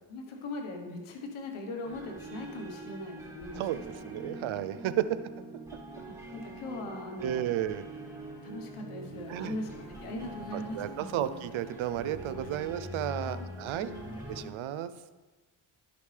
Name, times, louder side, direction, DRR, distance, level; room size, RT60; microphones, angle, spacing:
voice 1, 0.1-3.6 3.9-4.1 5.1-5.2 6.3-7.5 8.4-9.7 10.0-11.2 13.2-13.4 13.8-14.5, left 2 dB, 90° left, 3 dB, 1.2 m, -40 dB
sound 1, 1.8-14.4, right 2 dB, 5° right, 2.1 m, -44 dB
voice 2, 4.1-5.0 7.2-7.9 9.3-9.6 10.5-13.9 14.3-14.9, right 12 dB, 75° right, 13 dB, 0.6 m, -33 dB
sound 2, 9.1-14.5, left 4 dB, 30° left, 0.7 m, -53 dB
11.5 x 5.1 x 3.3 m, 1.3 s
cardioid pair, 55°, 48 cm